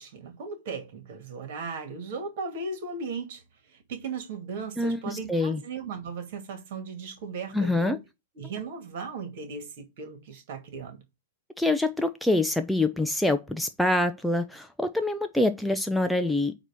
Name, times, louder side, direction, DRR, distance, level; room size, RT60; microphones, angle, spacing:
voice 1, 0.0-8.0 8.3-11.0, right 4 dB, 50° right, 2.3 m, -37 dB
voice 2, 4.8-5.6 7.5-8.0 11.6-16.5, left 2 dB, ahead, 0.6 m, -25 dB
8.9 x 3.0 x 6.1 m
figure-of-eight pair, 105°, 0 cm